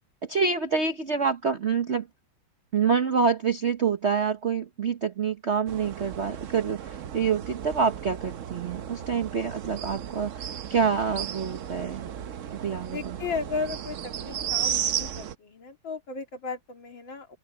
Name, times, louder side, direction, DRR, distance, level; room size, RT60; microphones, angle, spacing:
voice 1, 0.2-2.1 2.7-12.1 12.5-13.2, right 6 dB, 40° right, 1.1 m, -27 dB
sound 1, 5.7-15.3, right 9 dB, 60° right, 0.8 m, -34 dB
voice 2, 12.9-17.4, left 4 dB, 65° left, 3.4 m, -35 dB
omnidirectional pair, 2.2 m